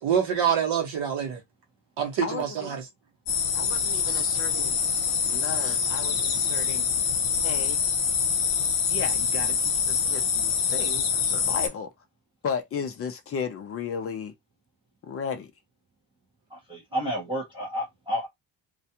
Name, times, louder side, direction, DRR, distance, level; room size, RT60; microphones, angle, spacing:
voice 1, 0.0-1.4 2.0-2.9, right 8 dB, 65° right, 1.0 m, -26 dB
voice 2, 2.2-2.7 3.6-4.7 5.3-6.8 7.4-7.8 8.9-11.9 12.4-14.3 15.0-15.5, left 6 dB, 30° left, 0.4 m, -34 dB
sound 1, 3.3-11.7, left 6 dB, 70° left, 0.9 m, -25 dB
voice 3, 16.5-18.3, equal, 10° right, 0.6 m, -31 dB
2.4 x 2.3 x 2.8 m
cardioid pair, 180°, 46 cm